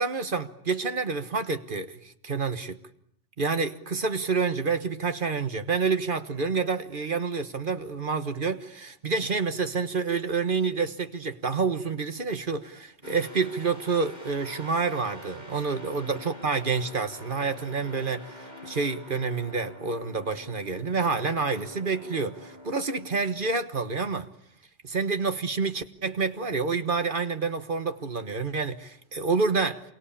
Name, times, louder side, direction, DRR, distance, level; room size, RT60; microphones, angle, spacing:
voice 1, 0.0-2.8 3.4-24.3 24.8-29.8, right 4 dB, 45° right, 1.4 m, -28 dB
sound 1, 13.0-23.6, left 1 dB, 35° left, 7.1 m, -46 dB
27.5 x 24.0 x 8.6 m
omnidirectional pair, 1.2 m